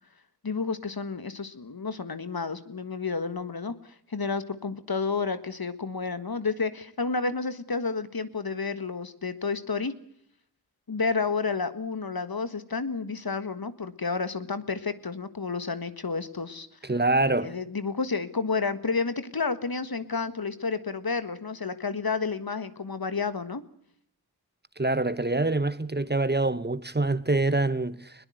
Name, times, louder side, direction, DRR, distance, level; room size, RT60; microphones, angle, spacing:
voice 1, 0.4-9.9 10.9-16.7 17.4-23.6, left 4 dB, 70° left, 1.7 m, -30 dB
voice 2, 16.8-17.5 24.8-28.1, right 2 dB, 25° right, 1.0 m, -25 dB
21.0 x 20.0 x 7.9 m
wide cardioid pair, 60°, 38 cm